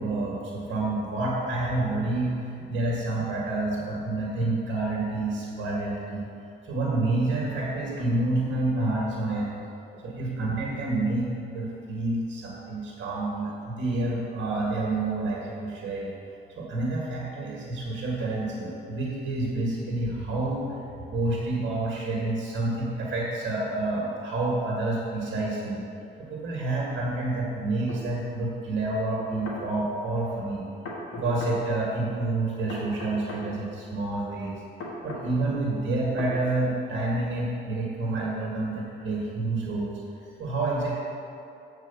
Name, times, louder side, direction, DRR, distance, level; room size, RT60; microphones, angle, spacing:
voice 1, 0.0-6.3 6.6-9.6 9.9-16.1 16.6-20.8 21.1-25.8 26.2-30.7 31.1-34.6 35.0-40.0 40.4-41.0, right 2 dB, 65° right, -4 dB, 1.6 m, -28 dB
sound 1, 27.9-28.0 29.2-29.6 30.8-31.6 32.7-33.5 34.8-35.3 36.2-36.4, left 2 dB, 75° left, 1.8 m, -37 dB
7.8 x 4.7 x 6.9 m, 2.6 s
cardioid pair, 90°, 20 cm